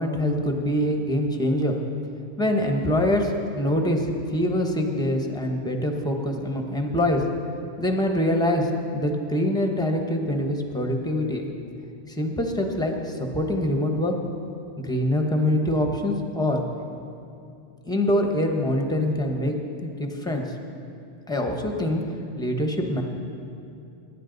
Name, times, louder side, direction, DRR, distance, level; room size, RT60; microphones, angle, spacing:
voice 1, 0.0-1.8 2.4-7.2 7.8-11.5 12.1-14.1 14.8-16.6 17.8-20.4 21.3-22.0 22.4-23.0, left 1 dB, 5° left, 2 dB, 0.9 m, -24 dB
20.0 x 9.8 x 3.9 m, 2.6 s
omnidirectional pair, 1.2 m